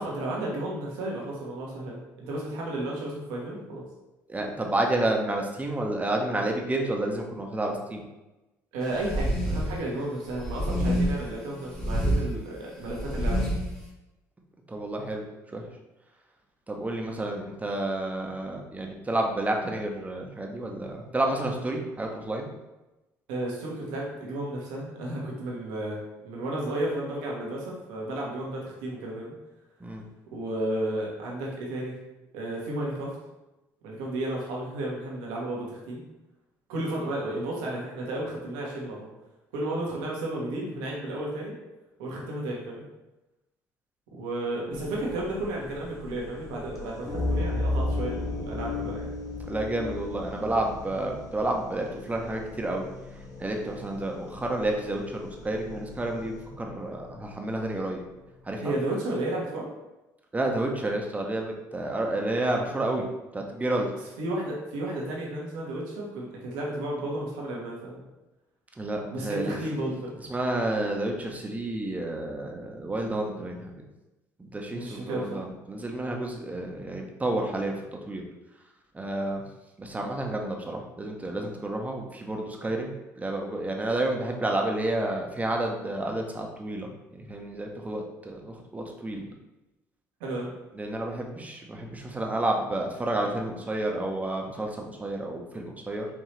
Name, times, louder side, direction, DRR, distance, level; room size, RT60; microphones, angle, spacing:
voice 1, 0.0-3.8 8.7-13.4 23.3-29.3 30.3-32.0 32.3-33.1 33.8-36.0 36.7-39.1 39.5-41.5 42.0-42.8 44.1-49.1 58.6-59.7 64.2-68.0 69.1-70.2 74.7-75.4 90.2-90.5, right 1 dB, 85° right, -3 dB, 1.2 m, -33 dB
voice 2, 4.3-8.0 14.7-15.2 15.5-15.6 16.7-22.5 29.8-30.0 49.5-52.9 53.4-58.0 58.5-58.7 60.3-63.0 63.3-63.9 68.8-69.6 70.3-73.7 74.4-77.7 78.1-78.2 78.9-79.4 79.8-82.9 83.2-89.3 90.8-96.1, right 1 dB, 20° right, 1 dB, 0.9 m, -30 dB
sound 1, 9.0-9.8 10.3-11.3 11.7-12.2 12.8-13.7, equal, 5° left, 1.2 m, -27 dB
sound 2, 44.7-58.2, left 2 dB, 40° left, 1.5 m, -35 dB
4.7 x 2.7 x 3.3 m, 1.0 s
supercardioid pair, 70°, 8 cm